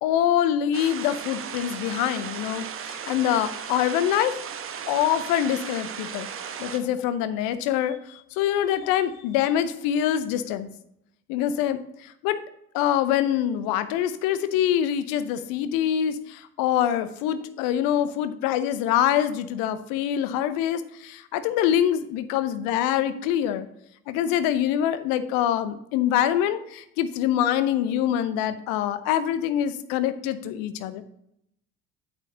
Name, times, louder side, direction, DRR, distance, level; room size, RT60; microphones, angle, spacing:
voice 1, 0.0-4.3 4.9-6.3 6.6-10.7 11.3-11.8 12.2-12.4 12.7-23.7 24.1-31.0, left 10 dB, 50° left, 12 dB, 0.8 m, -25 dB
sound 1, 0.7-6.8, right 7 dB, 30° right, 1.0 m, -36 dB
8.8 x 7.9 x 2.9 m, 0.77 s
figure-of-eight pair, 65°, 44 cm